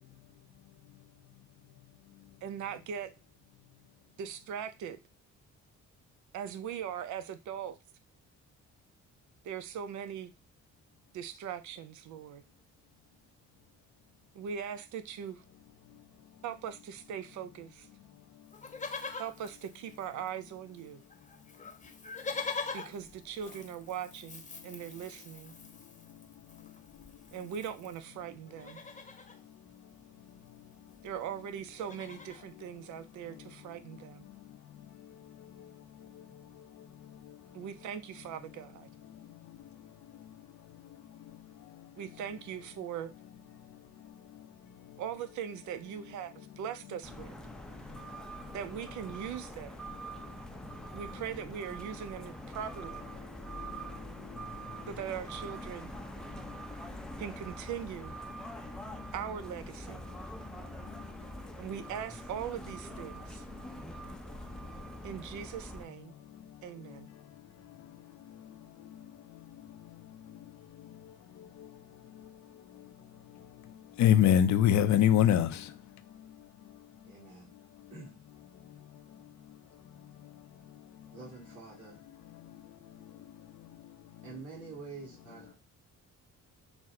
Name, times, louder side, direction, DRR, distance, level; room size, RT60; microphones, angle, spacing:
voice 1, 2.4-3.1 4.2-5.0 6.3-7.8 9.4-10.3 11.1-12.4 14.3-15.4 16.4-17.9 19.2-21.0 22.7-25.5 27.3-28.8 31.0-34.2 37.5-38.9 42.0-43.1 45.0-47.3 48.5-49.8 50.9-53.1 54.9-55.9 57.2-58.2 59.1-60.0 61.6-63.5 65.0-66.1 66.6-67.1, right 8 dB, 75° right, 0.5 m, -40 dB
Livestock farm animals working animals, 18.5-20.5 20.8-20.9 21.1-28.0 28.5-29.4 30.6-30.7 30.9-31.2 31.5-32.5 33.1-33.2, left 4 dB, 25° left, 0.8 m, -43 dB
sound 1, 47.0-65.8, right 1 dB, ahead, 0.5 m, -44 dB
voice 2, 74.0-75.7, left 10 dB, 70° left, 0.6 m, -23 dB
voice 3, 77.0-77.5 77.9-78.2 81.1-82.0 84.2-85.5, right 4 dB, 50° right, 2.1 m, -47 dB
6.0 x 2.1 x 3.6 m
cardioid pair, 90°, 30 cm